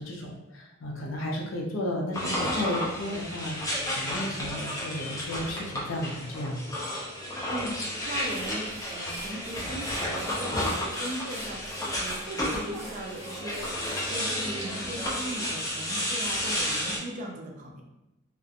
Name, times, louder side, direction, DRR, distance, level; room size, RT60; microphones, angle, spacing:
voice 1, 0.0-6.6, left 1 dB, 65° left, -1 dB, 0.5 m, -33 dB
sound 1, 2.1-17.0, left 1 dB, 15° left, 0.5 m, -32 dB
voice 2, 7.5-13.8 14.1-17.8, right 1 dB, 40° right, 1 dB, 0.4 m, -38 dB
sound 2, 7.7-7.9 8.2-14.1, right 1 dB, 75° right, 0.8 m, -46 dB
2.4 x 2.1 x 2.7 m, 0.90 s
head